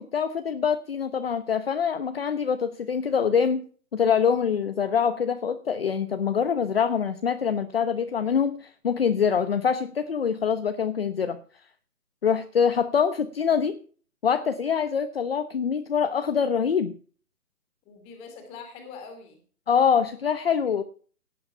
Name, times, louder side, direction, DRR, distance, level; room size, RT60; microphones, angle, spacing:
voice 1, 0.0-3.6 3.9-11.4 12.2-13.7 14.2-16.9 19.7-20.8, left 7 dB, 40° left, 10 dB, 1.0 m, -24 dB
voice 2, 17.8-19.4 20.7-20.8, left 5 dB, 15° left, 6 dB, 2.8 m, -43 dB
17.5 x 8.6 x 5.7 m, 0.42 s
hypercardioid pair, 160°, 46 cm